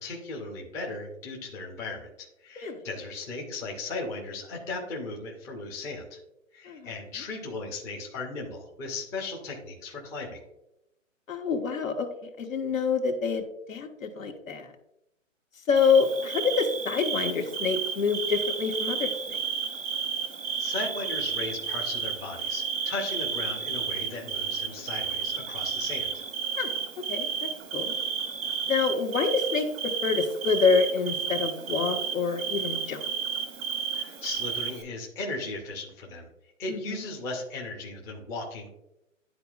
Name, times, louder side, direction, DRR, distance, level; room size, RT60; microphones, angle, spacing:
voice 1, 0.0-6.2 6.5-10.4 20.6-26.2 33.9-36.3 36.6-38.7, left 3 dB, 10° left, -1 dB, 0.5 m, -37 dB
voice 2, 11.3-14.7 15.7-19.4 26.6-26.7 27.0-27.9 28.7-33.0 36.7-37.0, left 5 dB, 85° left, 4 dB, 1.4 m, -27 dB
Bird / Cricket, 15.8-34.8, right 7 dB, 85° right, 1.3 m, -32 dB
11.0 x 4.1 x 2.4 m, 0.85 s
hypercardioid pair, 145°, 39 cm